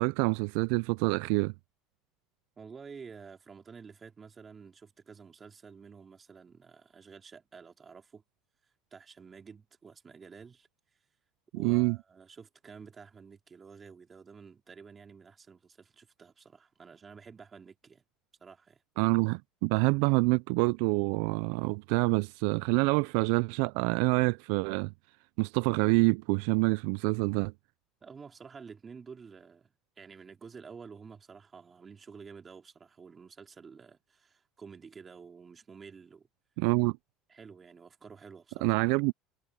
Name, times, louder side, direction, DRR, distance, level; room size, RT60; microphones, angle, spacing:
voice 1, 0.0-1.5 11.6-12.0 19.0-24.9 25.4-27.5 36.6-37.0 38.6-39.1, right 28 dB, 75° right, 0.3 m, -26 dB
voice 2, 2.6-8.2 8.9-10.7 11.5-18.0 18.4-18.8 28.0-36.3 37.3-38.7, right 5 dB, 25° right, 2.8 m, -50 dB
supercardioid pair, 115°, 0 cm